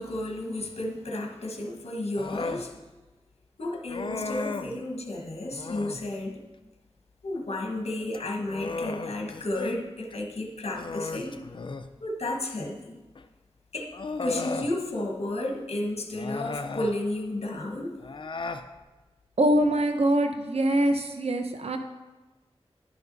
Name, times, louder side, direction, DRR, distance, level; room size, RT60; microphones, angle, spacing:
voice 1, 0.0-2.7 3.6-6.4 7.2-11.5 12.0-13.0 13.7-13.9 14.2-18.0, left 1 dB, 80° left, 1 dB, 1.2 m, -32 dB
Human voice, 2.2-2.7 3.9-4.8 5.5-6.1 8.0-9.8 10.1-10.2 10.7-11.9 13.1-13.2 13.9-14.7 16.1-17.0 18.0-18.7, left 3 dB, 50° left, 0.5 m, -35 dB
voice 2, 19.4-21.8, right 1 dB, 75° right, 5 dB, 0.8 m, -23 dB
11.0 x 6.0 x 4.0 m, 1.1 s
wide cardioid pair, 85°, 11 cm